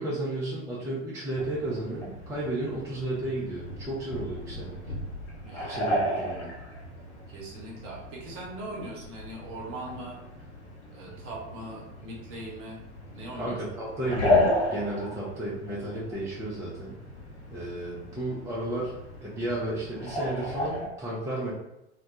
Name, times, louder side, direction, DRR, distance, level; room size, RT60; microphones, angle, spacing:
voice 1, 0.0-4.8 5.6-6.5 13.4-17.0 17.5-19.0 19.2-21.5, right 1 dB, 10° right, -7 dB, 0.4 m, -33 dB
sound 1, 1.3-20.9, left 1 dB, 65° left, 0.8 m, -34 dB
voice 2, 5.1-6.0 7.3-10.2 10.9-12.8 13.1-13.6, right 1 dB, 40° right, -3 dB, 0.9 m, -41 dB
2.2 x 2.1 x 2.7 m, 0.89 s
figure-of-eight pair, 70°, 35 cm